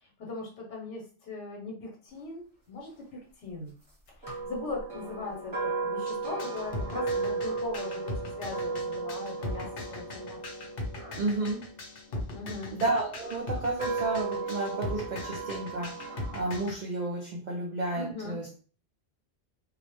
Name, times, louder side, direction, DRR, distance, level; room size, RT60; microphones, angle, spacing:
voice 1, 0.0-3.7 4.2-10.4 12.3-12.8 17.9-18.4, left 3 dB, 85° left, 0 dB, 1.1 m, -40 dB
sound 1, 4.2-12.4 13.1-16.6, right 4 dB, 25° right, 1.0 m, -35 dB
sound 2, 6.1-16.8, left 2 dB, 60° left, 0.7 m, -38 dB
voice 2, 11.1-11.7 12.7-18.6, right 2 dB, 55° right, -2 dB, 0.5 m, -32 dB
2.3 x 2.0 x 2.9 m, 0.40 s
omnidirectional pair, 1.2 m